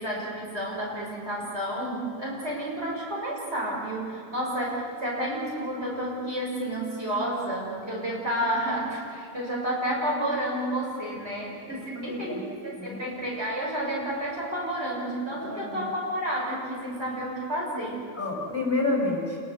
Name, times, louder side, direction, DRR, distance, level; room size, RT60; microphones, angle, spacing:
voice 1, 0.0-12.4 12.6-18.1, right 1 dB, 60° right, -4 dB, 6.5 m, -30 dB
voice 2, 12.0-12.4 12.8-13.0 15.3-15.9 18.2-19.4, left 2 dB, 10° left, -1 dB, 6.4 m, -29 dB
28.0 x 21.5 x 8.1 m, 2.4 s
omnidirectional pair, 1.2 m